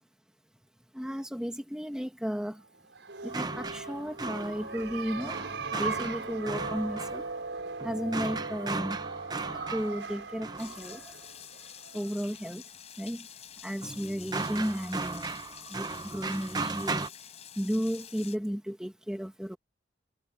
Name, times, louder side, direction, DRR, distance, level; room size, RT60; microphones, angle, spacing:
voice 1, 0.9-2.6 3.2-5.4 5.7-7.2 7.8-9.0 9.7-11.0 11.9-12.6 13.0-13.2 13.6-15.3 15.7-17.1 17.6-19.6, equal, 5° right, 1.2 m, -34 dB
sound 1, 2.9-12.4, right 4 dB, 85° right, 5.7 m, -39 dB
sound 2, 3.3-11.1 13.8-17.1, right 3 dB, 20° right, 0.7 m, -37 dB
Rain, 10.6-18.4, left 9 dB, 35° left, 4.1 m, -48 dB
head